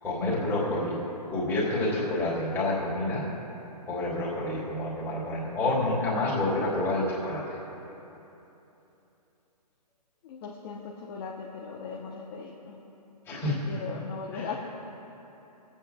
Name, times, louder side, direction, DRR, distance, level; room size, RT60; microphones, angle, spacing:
voice 1, 0.0-1.0 1.3-3.3 3.9-7.6 13.3-13.7 14.3-14.5, left 2 dB, 10° left, -8 dB, 2.9 m, -28 dB
voice 2, 10.2-12.8 13.4-14.5, left 5 dB, 35° left, -3 dB, 0.9 m, -38 dB
26.0 x 8.8 x 2.3 m, 3.0 s
hypercardioid pair, 140°, 21 cm